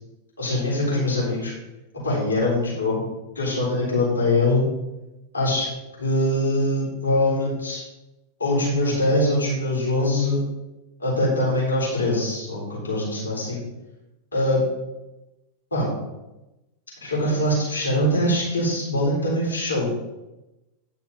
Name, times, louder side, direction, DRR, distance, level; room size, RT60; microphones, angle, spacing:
voice 1, 0.4-1.5 2.0-3.0 3.4-4.6 5.3-5.7 6.0-7.8 8.4-10.4 11.0-13.6 14.3-14.6 15.7-15.9 17.0-19.9, left 1 dB, 75° left, -6 dB, 3.6 m, -23 dB
10.0 x 5.4 x 5.2 m, 0.99 s
figure-of-eight pair, 90°, 0 cm